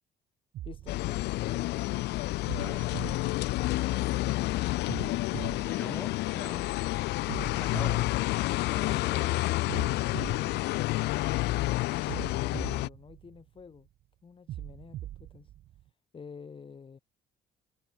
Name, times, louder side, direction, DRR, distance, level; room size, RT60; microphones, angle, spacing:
sound 1, 0.5-1.9 2.5-4.2 4.9-6.7 7.3-9.1 9.7-11.5 12.1-13.8 14.5-15.9, right 13 dB, 65° right, 2.1 m, -43 dB
voice 1, 0.6-1.9 3.5-4.1 11.9-13.9 14.2-15.5 16.1-17.0, left 5 dB, 30° left, 2.7 m, -49 dB
sound 2, 0.9-12.9, left 19 dB, 85° left, 1.2 m, -29 dB
voice 2, 2.6-3.0 5.7-6.7 7.5-8.1 8.7-9.4, left 2 dB, 10° left, 6.5 m, -43 dB
cardioid pair, 110°, 17 cm